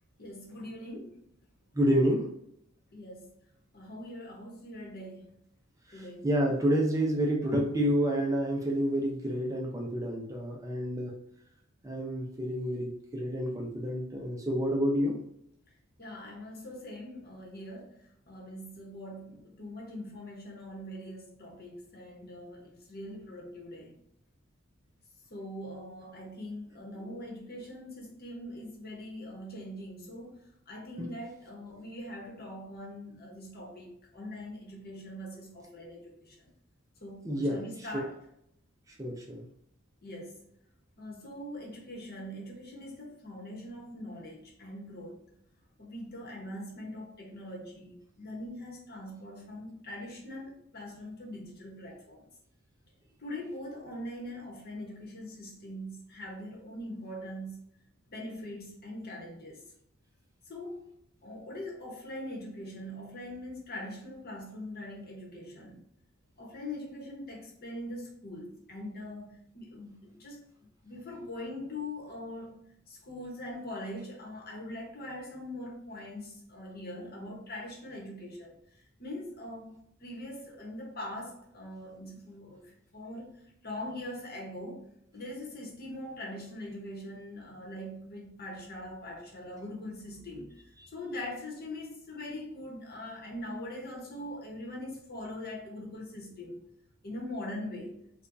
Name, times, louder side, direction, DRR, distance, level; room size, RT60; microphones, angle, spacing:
voice 1, 0.2-1.2 2.9-3.3 3.7-5.4 5.9-6.4 16.0-23.9 25.3-30.4 30.7-36.5 37.0-38.2 40.0-40.4 41.0-45.2 45.8-52.2 53.2-57.6 58.1-59.6 60.4-60.9 61.2-65.8 66.4-70.4 70.8-72.6 72.9-79.7 80.0-83.4 83.6-84.9 85.1-90.6 90.9-96.7 97.0-98.0, left 1 dB, 50° left, -1 dB, 1.0 m, -42 dB
voice 2, 1.7-2.3 5.9-11.2 11.8-15.2 27.0-27.1 31.0-31.1 37.2-37.9 39.0-39.5, equal, 15° right, -1 dB, 0.5 m, -29 dB
4.9 x 2.3 x 2.6 m, 0.74 s
head